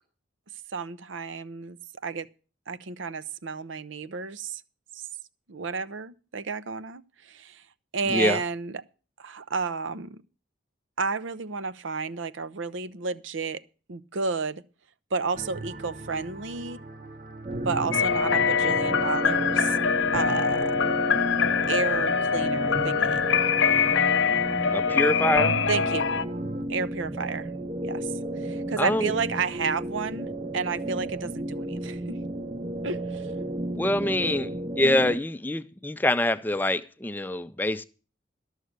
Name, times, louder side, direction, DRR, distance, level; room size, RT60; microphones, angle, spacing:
voice 1, 0.7-1.8 2.0-2.3 2.7-4.6 4.9-5.1 5.5-7.6 7.9-8.8 9.2-10.2 11.0-13.6 13.9-14.6 15.1-16.8 17.6-19.8 20.1-20.8 21.6-23.3 25.6-26.1 26.7-27.5 27.8-28.1 28.4-32.2 32.8-33.3, right 4 dB, 80° right, 0.7 m, -31 dB
voice 2, 8.1-8.4 24.7-25.5 28.8-29.1 33.8-34.5 34.8-37.8, left 1 dB, 10° left, 0.4 m, -25 dB
sound 1, 15.3-26.7, right 2 dB, 45° right, 1.2 m, -40 dB
sound 2, 17.4-35.2, right 1 dB, 25° right, 0.7 m, -32 dB
sound 3, 17.9-26.2, left 7 dB, 75° left, 0.7 m, -24 dB
12.5 x 6.5 x 6.6 m
head